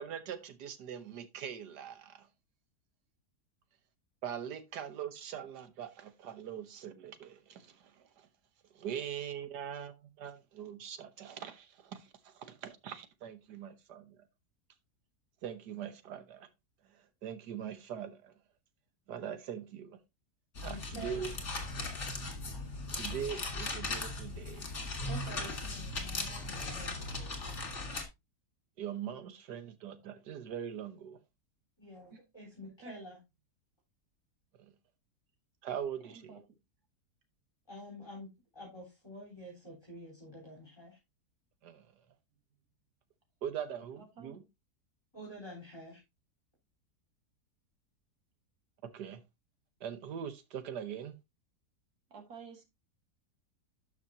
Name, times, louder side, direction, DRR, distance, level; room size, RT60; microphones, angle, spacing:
voice 1, 0.0-2.3 4.2-8.3 8.7-14.2 15.4-16.5 17.2-18.3 19.1-20.0 20.6-21.3 23.0-24.6 28.8-31.2 35.6-36.3 41.6-41.8 43.4-44.4 48.8-49.2 49.8-51.1, right 8 dB, 90° right, 1.6 m, -42 dB
sound 1, 20.5-28.0, left 2 dB, 45° left, 2.2 m, -38 dB
voice 2, 20.7-21.3 25.1-27.6 31.8-33.2 37.7-41.0 45.1-46.0, equal, 15° left, 4.0 m, -48 dB
voice 3, 36.0-36.4 44.0-44.4 52.1-52.6, right 5 dB, 70° right, 2.4 m, -51 dB
12.0 x 5.9 x 2.8 m
omnidirectional pair, 1.7 m